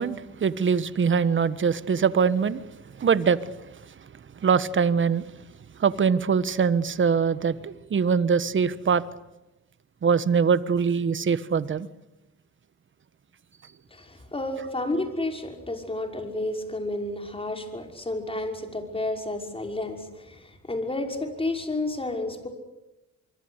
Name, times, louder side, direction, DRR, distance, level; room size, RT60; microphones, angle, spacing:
voice 1, 0.0-2.6 3.0-3.5 4.4-5.2 5.8-9.0 10.0-11.9, right 6 dB, 40° right, 15 dB, 1.4 m, -23 dB
voice 2, 13.9-22.5, left 2 dB, 20° left, 4 dB, 5.9 m, -31 dB
24.5 x 24.5 x 8.2 m, 0.97 s
cardioid pair, 90°, 30 cm